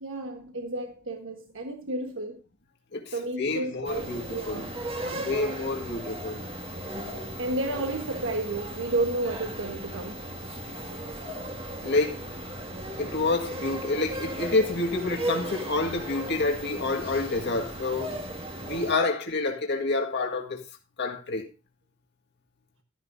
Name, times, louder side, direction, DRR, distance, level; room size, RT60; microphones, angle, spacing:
voice 1, 0.0-2.4 3.1-4.7 5.0-5.3 7.4-10.2, right 2 dB, 65° right, 1.3 m, -32 dB
voice 2, 2.9-4.7 5.1-6.5 11.8-12.2 13.0-18.2 18.6-20.6 21.0-21.5, left 3 dB, 55° left, 1.8 m, -28 dB
sound 1, 3.8-18.9, right 1 dB, 30° right, 1.9 m, -36 dB
13.5 x 11.0 x 2.6 m
head